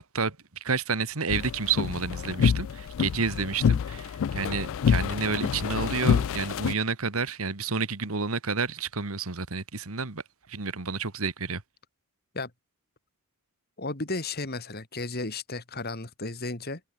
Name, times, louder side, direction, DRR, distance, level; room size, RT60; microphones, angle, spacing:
voice 1, 0.6-10.2 10.5-11.6, right 5 dB, 70° right, 1.8 m, -30 dB
sound 1, 1.3-6.7, left 7 dB, 60° left, 0.3 m, -27 dB
voice 2, 13.8-16.8, left 3 dB, 45° left, 2.7 m, -34 dB
head